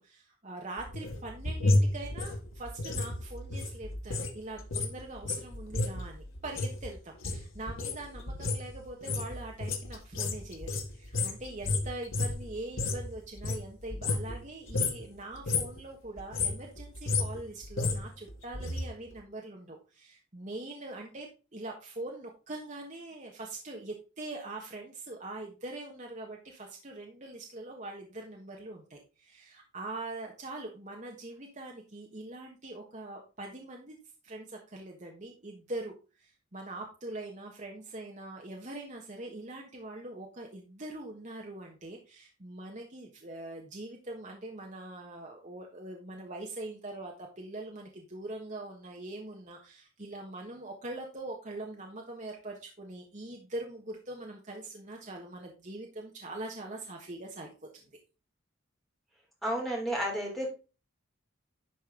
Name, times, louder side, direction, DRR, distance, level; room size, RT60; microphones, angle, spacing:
voice 1, 0.0-34.0 34.2-35.9 36.2-57.9, right 2 dB, 35° right, 1 dB, 1.3 m, -43 dB
sound 1, 0.8-4.3 4.6-13.1 13.4-14.4 14.7-15.1 15.3-15.8 16.2-18.8 19.1-19.2, left 2 dB, 70° left, 1.9 m, -32 dB
voice 2, 59.4-60.5, equal, ahead, -2 dB, 3.3 m, -31 dB
11.0 x 5.2 x 3.8 m, 0.32 s
head